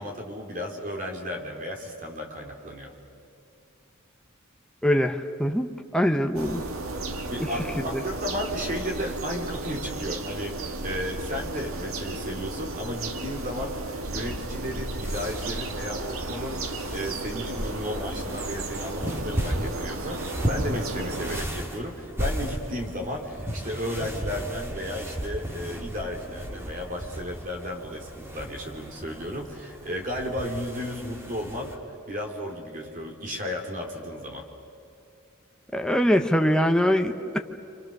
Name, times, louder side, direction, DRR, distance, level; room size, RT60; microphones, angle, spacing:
voice 1, 0.0-2.9 7.2-16.6 16.9-31.8 32.1-34.5, equal, 40° right, 2 dB, 3.4 m, -34 dB
voice 2, 4.8-6.6 7.9-8.0 35.7-37.4, equal, 5° left, 5 dB, 0.9 m, -23 dB
sound 1, 6.3-21.4, right 2 dB, 80° right, 1.7 m, -34 dB
sound 2, 15.0-31.8, equal, 10° right, 2.1 m, -35 dB
29.5 x 26.0 x 6.7 m, 2.5 s
head